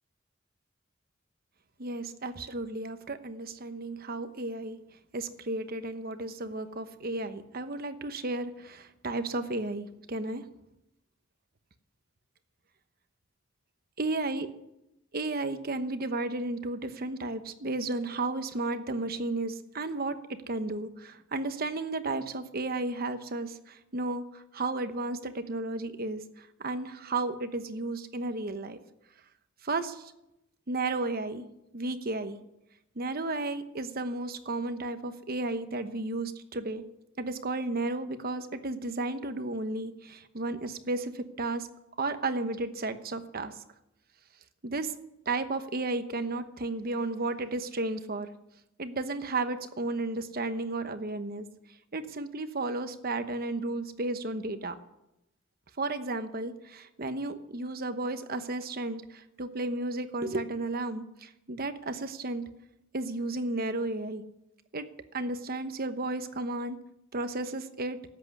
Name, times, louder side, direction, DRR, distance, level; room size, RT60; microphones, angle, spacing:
voice 1, 1.8-4.8 5.1-10.4 14.0-14.5 15.1-28.8 29.6-30.1 30.7-31.4 31.7-32.4 33.0-36.8 37.2-41.7 42.0-43.5 44.6-44.9 45.3-48.3 48.8-51.5 51.9-54.8 55.8-62.5 62.9-64.2 64.7-64.9 65.1-66.8 67.1-68.0, right 2 dB, 50° right, 9 dB, 1.0 m, -33 dB
13.0 x 8.6 x 9.6 m, 0.88 s
head